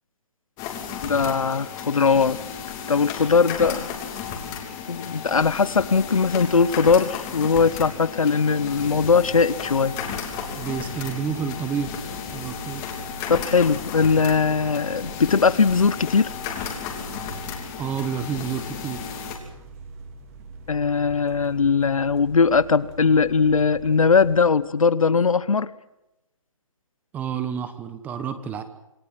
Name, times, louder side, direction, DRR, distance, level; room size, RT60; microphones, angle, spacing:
sound 1, 0.6-19.4, left 7 dB, 20° left, 3.0 m, -34 dB
voice 1, 1.0-2.4 2.9-3.9 4.9-10.0 13.3-16.3 20.7-25.7, left 5 dB, 80° left, 18 dB, 1.1 m, -20 dB
sound 2, 8.8-24.4, right 3 dB, 25° right, 2.8 m, -42 dB
voice 2, 10.6-11.9 12.3-12.8 17.8-19.0 27.1-28.6, right 7 dB, 10° right, 11 dB, 1.2 m, -29 dB
26.5 x 15.5 x 7.7 m, 0.93 s
hypercardioid pair, 160°, 17 cm